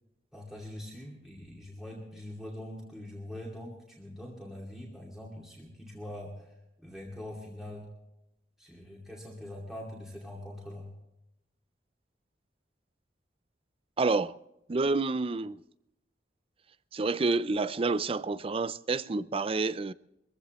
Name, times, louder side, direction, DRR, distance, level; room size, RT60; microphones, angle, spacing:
voice 1, 0.3-6.5 6.8-7.9 8.6-10.9, left 1 dB, 5° right, 2.5 m, -43 dB
voice 2, 14.0-14.4 14.7-15.6 16.9-19.9, right 3 dB, 35° right, 0.4 m, -28 dB
23.0 x 15.5 x 3.1 m
head